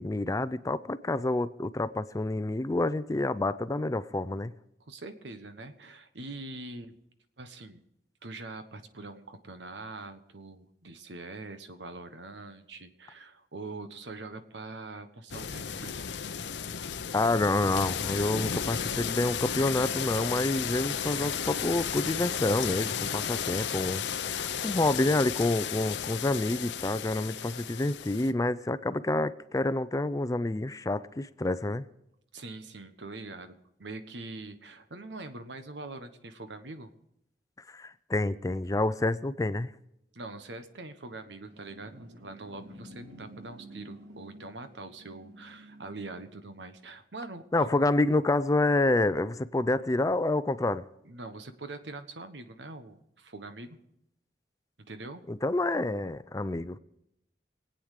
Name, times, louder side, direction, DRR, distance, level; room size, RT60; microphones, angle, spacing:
voice 1, 0.0-4.5 17.1-31.9 37.7-39.7 47.5-50.8 55.3-56.8, left 2 dB, 20° left, 14 dB, 0.4 m, -28 dB
voice 2, 4.8-6.9 7.4-7.8 8.2-16.0 32.3-36.9 40.1-47.7 51.0-53.8 54.9-55.2, right 2 dB, 85° right, 9 dB, 1.3 m, -43 dB
sound 1, 15.3-28.3, left 7 dB, 85° left, 0.8 m, -33 dB
sound 2, 41.1-46.7, right 1 dB, 70° right, 2.1 m, -51 dB
23.5 x 8.9 x 5.0 m, 0.80 s
head